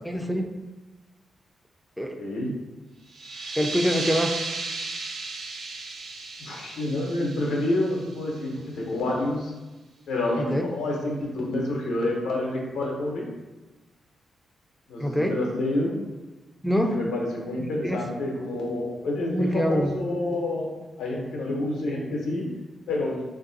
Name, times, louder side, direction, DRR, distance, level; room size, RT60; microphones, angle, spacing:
voice 1, 0.1-0.5 2.0-2.2 3.6-4.3 10.4-10.7 15.0-15.3 16.6-17.0 17.8-18.0 19.4-19.9, equal, ahead, 4 dB, 0.4 m, -25 dB
voice 2, 2.1-2.5 6.4-9.5 10.1-13.3 14.9-15.9 16.9-20.7 21.0-22.5 22.9-23.2, left 1 dB, 90° left, -2 dB, 0.7 m, -28 dB
sound 1, 3.1-8.5, right 3 dB, 75° right, 0.4 m, -35 dB
3.5 x 2.5 x 2.6 m, 1.1 s
cardioid pair, 55°, 0 cm